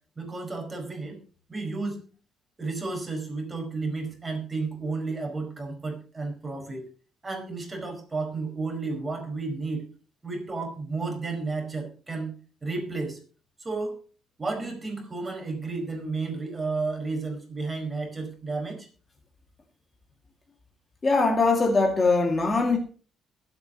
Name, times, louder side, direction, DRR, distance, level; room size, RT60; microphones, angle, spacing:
voice 1, 0.2-1.2 1.5-2.0 2.6-6.8 7.2-9.8 10.2-12.3 12.6-13.2 13.6-13.9 14.4-18.9, right 3 dB, 20° right, 5.0 m, -32 dB
voice 2, 21.0-22.8, left 3 dB, 30° left, 2.2 m, -21 dB
22.0 x 8.5 x 3.0 m
cardioid pair, 110°, 0 cm